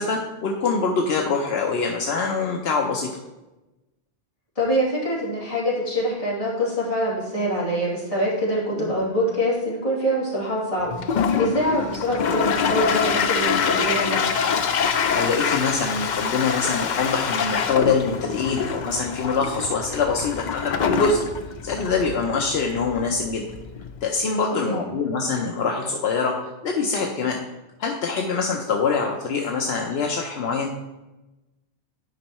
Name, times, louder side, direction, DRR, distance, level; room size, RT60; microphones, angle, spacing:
voice 1, 0.0-3.1 8.7-8.9 15.1-21.2 21.6-23.4 24.0-26.4 26.6-27.4 27.8-30.7, left 4 dB, 75° left, 1 dB, 0.9 m, -24 dB
voice 2, 4.6-14.4 24.5-24.8, equal, 35° left, -8 dB, 2.9 m, -25 dB
Toilet flush, 10.9-24.0, left 6 dB, 55° left, 0.6 m, -25 dB
10.5 x 5.3 x 3.0 m, 1.0 s
omnidirectional pair, 1.1 m